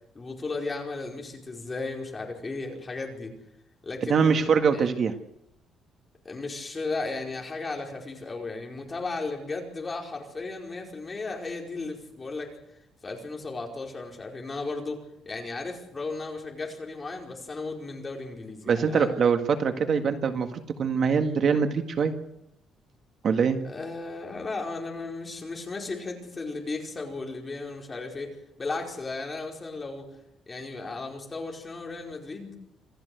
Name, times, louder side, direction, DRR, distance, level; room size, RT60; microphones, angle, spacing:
voice 1, 0.1-3.4 3.8-4.4 4.7-4.9 6.2-12.5 13.0-19.1 23.6-30.1 30.5-32.5, left 3 dB, 20° left, 1 dB, 5.0 m, -35 dB
voice 2, 4.1-5.1 18.7-22.1 23.2-23.6, right 6 dB, 45° right, 6 dB, 1.8 m, -23 dB
27.0 x 15.0 x 8.0 m, 0.82 s
cardioid pair, 145°, 0 cm